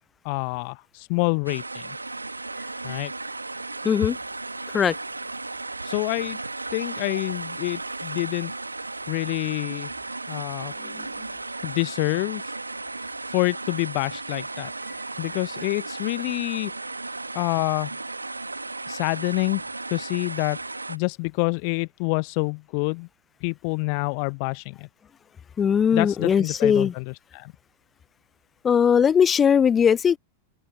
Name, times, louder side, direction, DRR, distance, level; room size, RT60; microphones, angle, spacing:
voice 1, 0.2-1.8 2.8-3.1 5.8-6.4 6.7-8.5 9.1-9.9 10.3-10.7 11.6-12.5 13.3-14.7 15.2-16.7 17.3-17.9 18.9-19.6 19.9-20.6 20.9-23.1 23.4-24.9 25.9-27.5, left 38 dB, 45° left, 0.8 m, -27 dB
sound 1, 1.5-21.0, right 3 dB, 80° right, 1.9 m, -35 dB
voice 2, 3.8-4.2 4.7-5.0 10.8-11.1 25.6-26.9 28.6-30.2, left 7 dB, 20° left, 0.3 m, -19 dB
open air
figure-of-eight pair, 90°, 0 cm